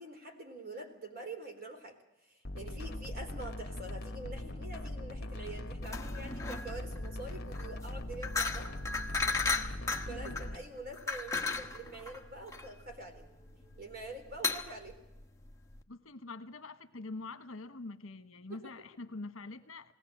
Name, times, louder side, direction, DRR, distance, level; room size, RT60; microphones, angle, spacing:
voice 1, 0.0-8.7 9.6-13.3 13.8-15.0 18.5-18.7, right 2 dB, 45° right, 4 dB, 3.9 m, -46 dB
sound 1, 2.4-10.6, left 1 dB, 50° left, 1.5 m, -41 dB
sound 2, 4.8-14.6, left 1 dB, ahead, 3.1 m, -66 dB
sound 3, 5.8-15.8, left 4 dB, 15° left, 1.1 m, -36 dB
voice 2, 15.9-19.9, left 3 dB, 70° left, 10 dB, 1.3 m, -45 dB
20.5 x 18.5 x 7.9 m, 0.93 s
head